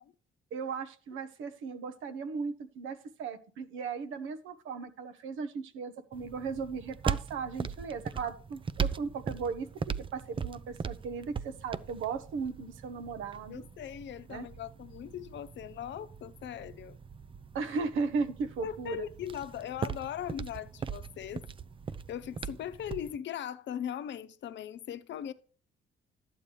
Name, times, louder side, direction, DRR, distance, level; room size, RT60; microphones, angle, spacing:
voice 1, 0.5-9.7 10.0-13.6 14.3-14.5 17.5-19.0, right 5 dB, 85° right, 1.1 m, -36 dB
sound 1, 6.1-23.2, right 6 dB, 25° right, 0.5 m, -39 dB
voice 2, 13.5-17.0 18.6-21.4 22.1-25.3, left 10 dB, 65° left, 0.7 m, -39 dB
11.5 x 8.6 x 3.2 m
cardioid pair, 90°, 20 cm